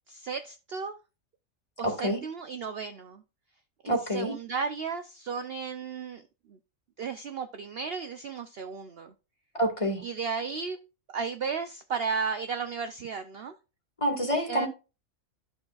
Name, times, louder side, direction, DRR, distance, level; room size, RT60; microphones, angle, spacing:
voice 1, 0.1-0.9 1.8-3.2 3.8-6.2 6.5-6.6 7.0-9.1 10.0-10.8 11.1-13.5 14.5-14.7, right 5 dB, 60° right, 0.7 m, -34 dB
voice 2, 1.8-2.2 3.9-4.3 9.5-10.0 14.0-14.7, equal, 25° left, 2.1 m, -27 dB
12.0 x 6.3 x 2.4 m
omnidirectional pair, 1.4 m